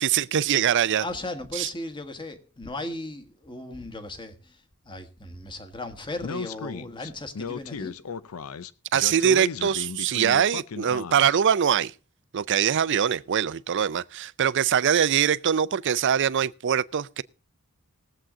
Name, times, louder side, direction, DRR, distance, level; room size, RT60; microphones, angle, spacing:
voice 1, 0.0-1.1 1.5-1.7 8.9-11.9 12.3-17.2, right 8 dB, 60° right, 0.5 m, -23 dB
voice 2, 1.0-4.6 4.9-7.9, left 2 dB, 20° left, 1.3 m, -36 dB
Speech, 6.2-11.4, left 6 dB, 80° left, 0.6 m, -35 dB
20.0 x 7.7 x 3.7 m
head